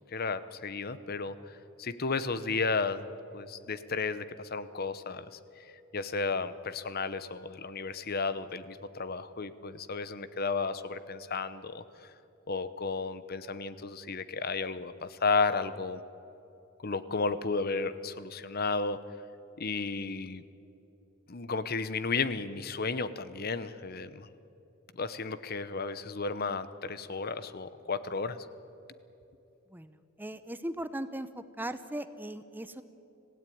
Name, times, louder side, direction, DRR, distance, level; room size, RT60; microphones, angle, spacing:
voice 1, 0.1-1.5 1.8-11.8 12.5-16.0 16.8-19.0 19.6-20.4 21.3-24.3 24.9-28.4, left 4 dB, 45° left, 14 dB, 0.9 m, -33 dB
voice 2, 29.7-32.8, right 1 dB, 10° right, 12 dB, 0.7 m, -38 dB
26.0 x 17.0 x 9.3 m, 2.9 s
head